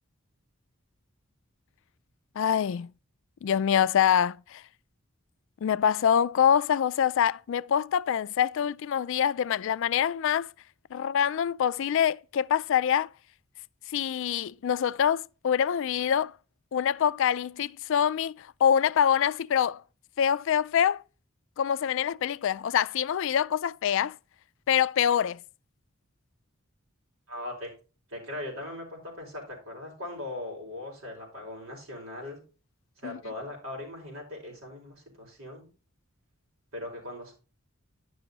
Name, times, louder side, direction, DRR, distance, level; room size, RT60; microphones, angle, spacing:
voice 1, 2.4-2.9 3.4-4.6 5.6-10.5 10.9-13.1 13.9-16.3 16.7-19.8 20.2-21.0 21.6-24.1 24.7-25.4 33.0-33.2, left 8 dB, 65° left, 0.3 m, -25 dB
voice 2, 27.3-27.7 28.1-32.4 33.0-35.7 36.7-37.3, left 1 dB, 75° right, 5.0 m, -39 dB
10.5 x 6.2 x 4.0 m
head